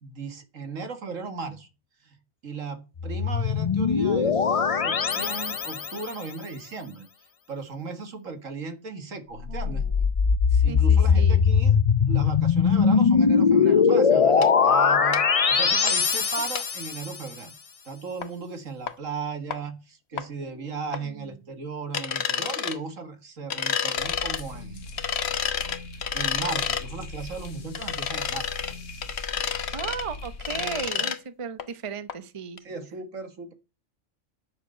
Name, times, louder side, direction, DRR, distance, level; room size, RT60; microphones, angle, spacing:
voice 1, 0.0-1.7 2.0-2.2 2.4-7.1 7.5-9.9 10.6-11.8 12.1-17.5 17.9-24.9 26.1-28.6 31.0-31.1 32.6-33.5, right 4 dB, 80° right, 2.1 m, -36 dB
sound 1, 3.0-6.1 9.4-17.1, left 6 dB, 40° left, 0.5 m, -21 dB
voice 2, 9.5-10.0 10.5-11.4 20.1-21.3 29.7-32.6, right 6 dB, 30° right, 0.8 m, -37 dB
sound 2, 14.4-14.5 15.1-15.2 15.9-16.0 16.6-16.7 18.2-18.3 18.9-19.0 19.5-19.6 20.2-20.3 20.9-21.0 21.9-22.8 23.5-24.4 25.0-26.8 27.7-28.7 29.0-30.0 30.4-31.2 31.6-31.7 32.1-32.2 32.6-32.7, left 7 dB, 55° left, 1.2 m, -29 dB
sound 3, 24.0-30.9, left 3 dB, 70° left, 1.7 m, -40 dB
9.8 x 6.6 x 7.7 m
omnidirectional pair, 1.3 m